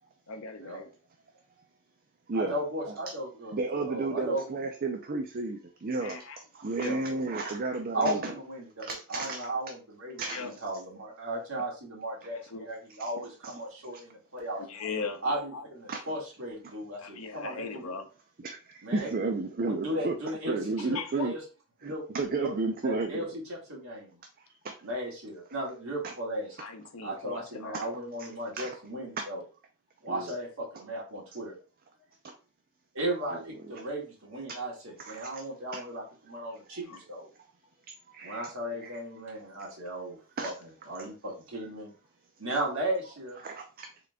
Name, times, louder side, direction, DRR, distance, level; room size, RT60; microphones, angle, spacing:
voice 1, 0.3-0.9 6.0-6.4 6.8-7.0 10.3-10.5 12.3-12.7 14.7-15.2 15.5-15.7 17.0-18.1 20.9-21.3 26.6-27.8 36.9-37.0, left 4 dB, 70° left, 0.7 m, -38 dB
voice 2, 2.3-4.6 6.9-7.3 7.9-14.8 15.2-17.8 18.8-19.3 19.6-21.4 21.8-22.0 22.4-22.5 22.8-24.2 24.8-26.6 27.0-29.4 30.0-31.5 32.9-37.3 38.2-40.5 40.9-41.9 42.4-43.4, right 1 dB, 65° right, 1.9 m, -36 dB
voice 3, 3.5-6.2 6.5-8.3 8.8-9.5 10.2-10.4 13.4-13.5 15.9-16.0 18.4-20.1 20.5-21.3 21.8-23.3 24.6-24.7 26.0-26.1 27.7-27.8 28.6-28.7 29.2-29.3 30.1-30.4 33.3-33.4 35.0-35.3 35.7-35.8 38.1-38.5 38.8-39.0 40.4-40.5 43.4-43.9, right 3 dB, 40° right, 0.5 m, -32 dB
3.7 x 3.3 x 3.5 m
head